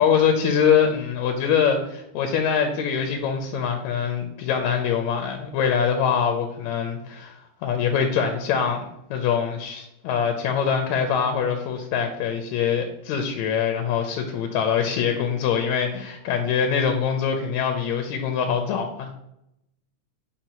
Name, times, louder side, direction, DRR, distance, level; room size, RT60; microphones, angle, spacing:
voice 1, 0.0-19.1, left 7 dB, 80° left, 5 dB, 1.8 m, -24 dB
7.9 x 4.3 x 2.9 m, 0.81 s
omnidirectional pair, 3.5 m